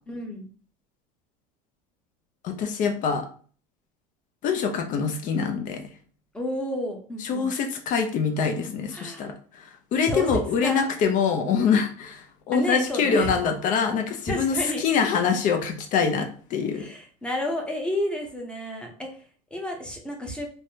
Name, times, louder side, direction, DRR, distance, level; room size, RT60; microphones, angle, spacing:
voice 1, 0.1-0.5 6.3-7.5 8.9-9.2 10.0-10.8 12.5-13.3 14.3-14.8 16.7-20.5, equal, 5° left, 1 dB, 0.7 m, -31 dB
voice 2, 2.4-3.3 4.4-5.8 7.2-16.9, left 6 dB, 45° left, 5 dB, 0.6 m, -25 dB
3.3 x 2.1 x 2.7 m, 0.43 s
supercardioid pair, 110°, 19 cm